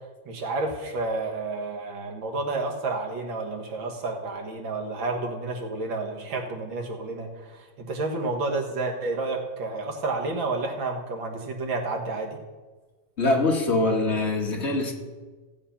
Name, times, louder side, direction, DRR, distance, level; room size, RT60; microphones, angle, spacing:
voice 1, 0.3-12.4, right 3 dB, 85° right, 2 dB, 2.3 m, -30 dB
voice 2, 13.2-14.9, left 2 dB, 40° left, 1 dB, 1.7 m, -23 dB
15.0 x 7.8 x 5.7 m, 1.3 s
omnidirectional pair, 2.0 m